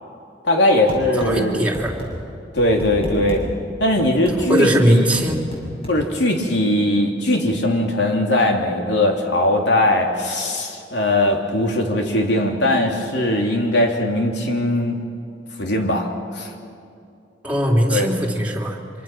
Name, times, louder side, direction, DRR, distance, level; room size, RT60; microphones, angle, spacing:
voice 1, 0.4-1.6 2.5-3.4 3.8-5.1 5.9-15.0 15.6-16.5 17.9-18.1, left 1 dB, 70° left, 2 dB, 3.3 m, -20 dB
sound 1, 0.9-1.3 1.7-2.1 2.6-3.4 4.0-4.4 5.2-6.0, equal, 35° left, 7.1 m, -31 dB
voice 2, 1.2-2.0 4.5-5.4 17.4-18.8, equal, 10° right, -2 dB, 3.5 m, -19 dB
25.5 x 25.5 x 6.2 m, 2.6 s
head